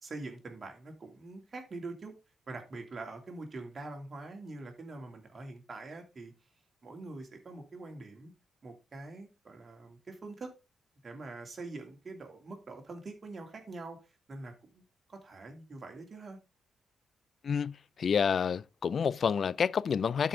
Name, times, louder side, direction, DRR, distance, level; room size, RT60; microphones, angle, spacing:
voice 1, 0.0-2.1 2.5-6.3 6.8-8.3 8.6-10.5 11.0-14.8 15.1-16.4, right 2 dB, 45° right, 2.8 m, -44 dB
voice 2, 17.4-20.3, left 6 dB, 55° left, 0.4 m, -29 dB
11.5 x 5.3 x 3.8 m
hypercardioid pair, 40°, 0 cm